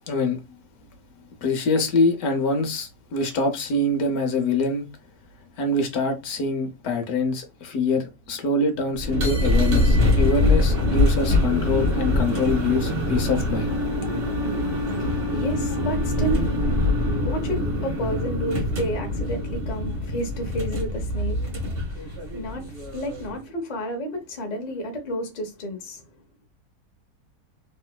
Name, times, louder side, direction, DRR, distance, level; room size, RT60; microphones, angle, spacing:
voice 1, 0.1-0.4 1.4-4.9 5.6-13.7, left 2 dB, 65° left, 1.1 m, -24 dB
sound 1, 8.9-23.4, left 1 dB, 40° right, 1.0 m, -24 dB
Wind instrument woodwind instrument, 13.4-18.2, left 4 dB, 70° right, 1.2 m, -32 dB
voice 2, 14.8-26.0, right 1 dB, 45° left, 0.5 m, -31 dB
3.0 x 3.0 x 2.2 m
omnidirectional pair, 1.8 m